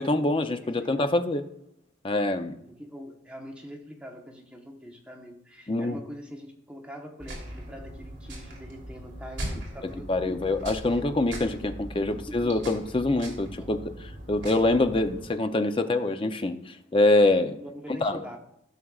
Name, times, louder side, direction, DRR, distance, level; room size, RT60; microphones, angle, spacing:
voice 1, 0.0-1.5 2.0-2.6 5.7-6.0 10.1-17.6 18.0-18.2, left 2 dB, 25° left, 8 dB, 0.5 m, -25 dB
voice 2, 2.7-10.5 10.9-11.1 11.9-12.7 13.6-13.7 17.6-18.4, equal, 5° right, 1 dB, 1.0 m, -44 dB
sound 1, 7.2-15.3, right 1 dB, 60° right, 2.6 m, -40 dB
14.5 x 6.2 x 2.4 m, 0.79 s
head